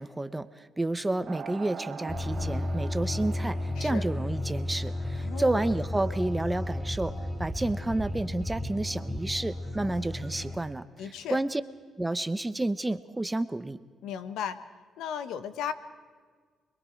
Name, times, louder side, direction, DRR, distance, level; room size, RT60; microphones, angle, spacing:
voice 1, 0.0-7.1 7.4-11.6 12.0-13.8, right 2 dB, 15° right, 12 dB, 0.9 m, -30 dB
sound 1, 1.3-6.4, right 6 dB, 50° right, 1.6 m, -44 dB
sound 2, 2.1-10.6, left 1 dB, 5° left, 4.3 m, -33 dB
voice 2, 5.2-5.7 11.0-11.4 14.0-14.6 15.0-15.7, left 8 dB, 85° left, 11 dB, 1.2 m, -35 dB
28.5 x 22.0 x 4.6 m, 1.6 s
cardioid pair, 90°, 0 cm